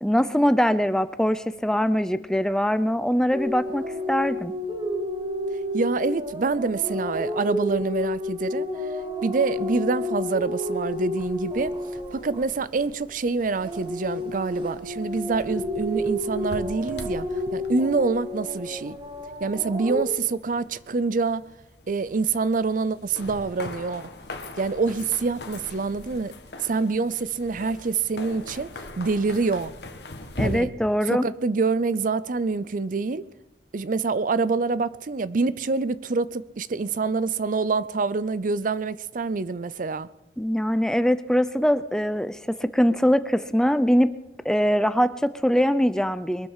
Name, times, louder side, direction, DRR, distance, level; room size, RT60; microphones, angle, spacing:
voice 1, 0.0-4.5 30.4-31.3 40.4-44.1 44.4-46.5, equal, 5° left, 0.5 m, -22 dB
sound 1, 3.3-13.1 13.5-20.1, left 1 dB, 30° right, 1.8 m, -30 dB
voice 2, 5.7-8.7 9.2-11.7 12.1-17.3 17.5-19.0 19.4-21.4 21.9-24.1 24.6-26.3 26.6-28.7 29.0-29.7 30.4-30.7 31.1-33.2 33.7-40.1, right 4 dB, 50° right, 0.5 m, -26 dB
sound 2, 11.2-30.6, left 2 dB, 70° left, 1.5 m, -41 dB
22.0 x 12.5 x 4.9 m
head